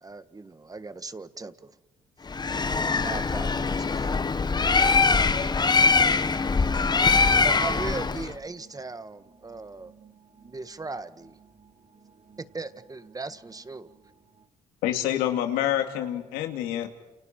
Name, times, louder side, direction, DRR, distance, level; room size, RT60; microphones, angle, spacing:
voice 1, 0.0-1.7 2.9-4.1 7.3-9.9 10.4-11.4 12.5-13.9, right 3 dB, 25° right, 1.6 m, -38 dB
Bird, 2.3-8.3, left 4 dB, 30° left, 1.1 m, -22 dB
voice 2, 9.5-10.6 11.5-12.4 13.8-14.0 14.3-14.5, right 6 dB, 45° right, 2.6 m, -57 dB
voice 3, 14.8-16.9, left 12 dB, 90° left, 2.4 m, -27 dB
29.5 x 29.0 x 4.5 m
supercardioid pair, 65°, 15 cm